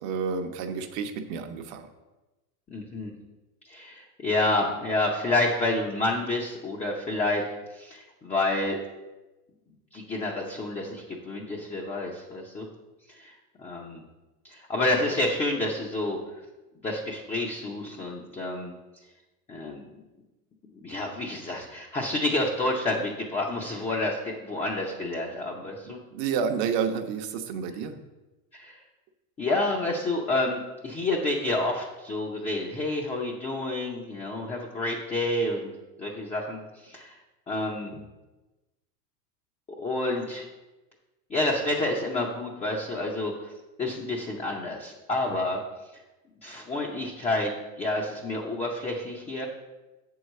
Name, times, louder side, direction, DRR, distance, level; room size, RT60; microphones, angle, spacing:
voice 1, 0.0-1.9 25.8-28.0, right 6 dB, 50° right, 7 dB, 0.9 m, -30 dB
voice 2, 2.7-3.1 3.7-7.5 7.7-8.8 9.9-12.7 13.1-14.0 14.4-16.2 16.8-18.7 19.5-19.9 20.8-26.0 28.5-28.8 29.4-35.7 36.0-37.2 37.5-38.0 39.8-40.4 41.3-43.5 43.8-45.6 46.4-47.5 47.8-49.5, left 2 dB, 15° left, -1 dB, 0.6 m, -29 dB
7.2 x 4.7 x 6.4 m, 1.1 s
supercardioid pair, 140°, 46 cm